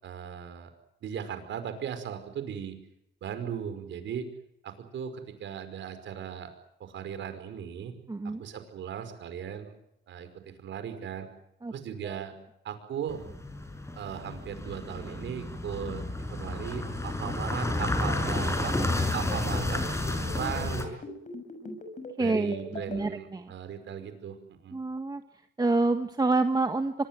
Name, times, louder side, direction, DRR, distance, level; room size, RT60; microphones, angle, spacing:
voice 1, 0.0-0.7 1.0-2.8 3.2-4.3 4.6-6.5 6.8-7.9 8.2-9.7 10.1-11.3 11.7-12.3 12.6-13.2 14.0-18.8 19.1-19.8 20.3-21.0 22.2-24.8, right 8 dB, 70° right, 9 dB, 5.3 m, -37 dB
voice 2, 8.1-8.5 11.6-11.7 12.0-12.2 22.2-23.5 24.7-25.2 25.6-26.9, right 3 dB, 20° right, 7 dB, 1.6 m, -27 dB
sound 1, 13.1-20.8, left 2 dB, 15° left, 5.9 m, -31 dB
sound 2, 19.1-23.0, left 2 dB, 40° left, 6.4 m, -40 dB
25.0 x 22.0 x 7.7 m, 0.79 s
cardioid pair, 90°, 20 cm